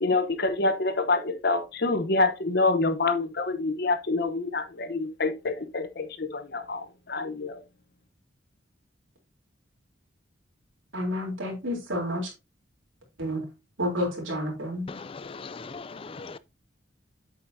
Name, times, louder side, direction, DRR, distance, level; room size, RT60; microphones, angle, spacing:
voice 1, 0.0-7.6, left 3 dB, 55° left, 0.9 m, -27 dB
voice 2, 10.9-12.3 13.2-13.5 13.8-14.9, left 1 dB, 85° right, 3.5 m, -30 dB
voice 3, 14.9-16.4, left 4 dB, 30° left, 0.4 m, -39 dB
8.3 x 7.4 x 2.7 m
head